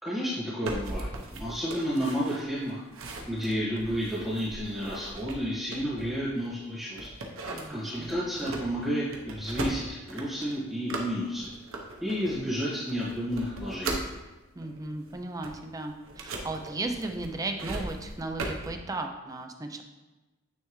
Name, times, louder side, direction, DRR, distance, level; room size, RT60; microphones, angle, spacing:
voice 1, 0.0-2.8 3.3-7.1 7.4-11.5 12.0-14.1, equal, ahead, -10 dB, 1.4 m, -31 dB
sound 1, 0.6-6.5 6.9-14.2 14.6-18.7, right 2 dB, 85° right, 0.9 m, -39 dB
voice 2, 7.5-8.1 14.6-19.8, right 2 dB, 15° right, 4 dB, 0.5 m, -35 dB
9.3 x 3.4 x 3.1 m, 1.1 s
head